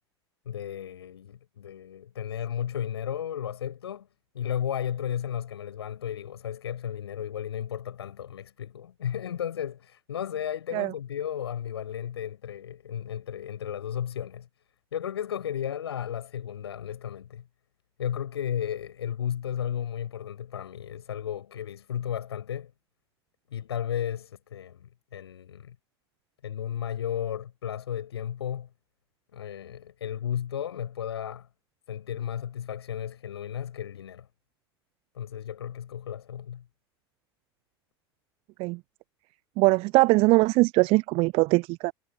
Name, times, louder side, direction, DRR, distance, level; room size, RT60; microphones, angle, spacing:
voice 1, 0.4-4.1 4.3-14.5 14.9-17.4 18.0-22.7 23.5-25.7 26.4-28.7 29.3-31.5 31.9-34.3 35.1-36.6, left 9 dB, 70° left, 6.6 m, -34 dB
voice 2, 39.6-41.9, right 24 dB, 45° right, 0.6 m, -21 dB
figure-of-eight pair, 75°, 14 cm